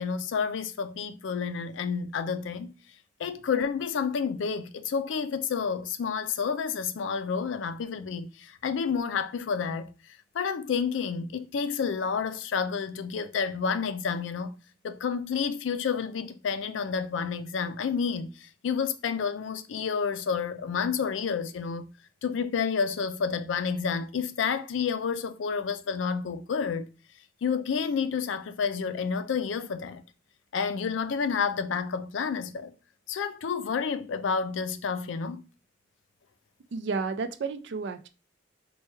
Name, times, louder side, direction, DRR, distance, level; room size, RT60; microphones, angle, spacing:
voice 1, 0.0-2.7 3.2-9.9 10.3-14.6 14.8-21.8 22.2-26.9 27.4-30.0 30.5-32.7 33.1-35.4, left 6 dB, 80° left, 0.4 m, -30 dB
voice 2, 36.7-38.1, right 4 dB, 65° right, 0.4 m, -31 dB
4.4 x 2.2 x 2.9 m
head